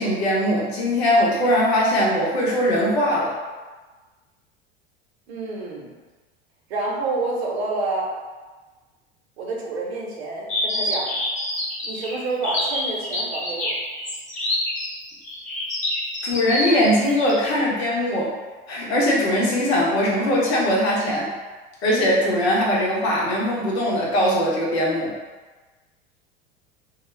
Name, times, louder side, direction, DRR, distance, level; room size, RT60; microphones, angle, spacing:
voice 1, 0.0-3.3 16.2-18.3 18.7-21.3 21.8-25.1, equal, 90° left, -4 dB, 0.9 m, -21 dB
voice 2, 5.3-5.9 6.7-8.1 9.4-11.1 11.8-13.7, right 3 dB, 85° right, -2 dB, 0.8 m, -28 dB
sound 1, 10.5-17.5, left 1 dB, 25° left, 0.8 m, -27 dB
2.3 x 2.1 x 3.1 m, 1.3 s
hypercardioid pair, 90°, 31 cm